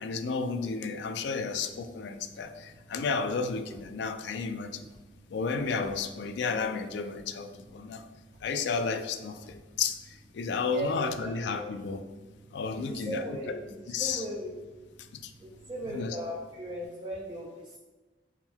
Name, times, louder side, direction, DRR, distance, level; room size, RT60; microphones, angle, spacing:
voice 1, 0.0-4.9 5.3-8.1 8.4-12.0 12.5-13.3 13.9-14.2 15.0-15.3 15.9-16.2, left 5 dB, 65° left, 9 dB, 0.3 m, -32 dB
sound 1, 1.2-16.9, right 1 dB, 30° left, 1.0 m, -57 dB
sound 2, 2.9-3.4 3.7-4.2 4.9-5.3 5.7-6.3 7.1-7.5 8.3-8.6 9.4-9.8, equal, 55° right, 1.0 m, -55 dB
voice 2, 12.7-13.5 14.0-14.5 15.4-17.8, equal, 25° right, -2 dB, 0.4 m, -37 dB
3.6 x 2.2 x 4.3 m, 1.2 s
head